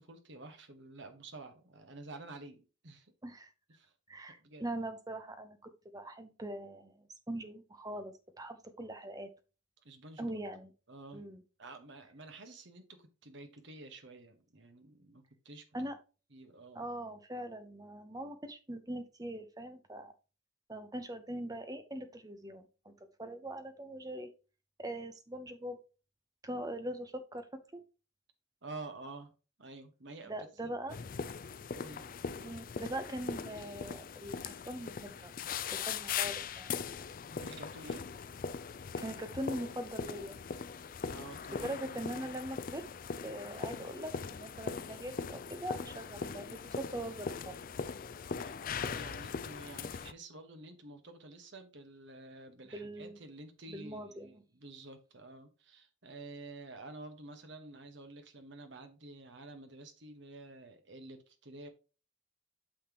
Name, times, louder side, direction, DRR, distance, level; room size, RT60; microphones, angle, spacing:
voice 1, 0.0-3.1 3.7-3.9 4.3-4.7 9.8-10.4 10.9-11.2 11.6-15.6 16.3-16.8 28.6-29.3 29.6-30.7 31.7-32.0 37.4-38.0 41.0-41.8 48.4-61.7, right 2 dB, 60° right, 7 dB, 1.3 m, -50 dB
voice 2, 4.1-5.6 5.9-9.3 10.2-10.7 11.1-11.4 15.7-16.0 16.7-20.1 20.7-24.3 24.8-25.8 26.4-27.5 27.7-27.8 30.2-31.0 32.3-35.3 35.7-36.7 39.0-40.4 41.5-42.8 43.2-47.6 48.7-48.8 52.7-53.2 53.7-54.3, right 1 dB, 20° right, 8 dB, 0.8 m, -42 dB
sound 1, 30.9-50.1, left 6 dB, 40° left, 0.4 m, -40 dB
8.7 x 5.8 x 3.0 m, 0.33 s
head